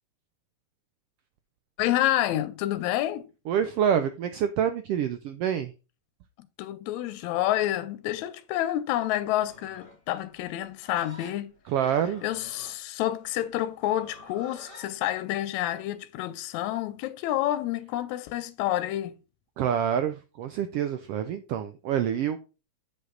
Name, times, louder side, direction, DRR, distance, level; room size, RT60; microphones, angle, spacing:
voice 1, 1.8-3.3 6.6-11.5 12.2-19.1, left 13 dB, 85° left, 1.9 m, -28 dB
voice 2, 3.5-5.7 11.7-12.2 19.6-22.4, right 9 dB, 90° right, 1.3 m, -27 dB
Livestock farm animals working animals, 9.2-14.9, left 2 dB, 20° left, 1.9 m, -50 dB
7.9 x 5.3 x 3.8 m
omnidirectional pair, 3.3 m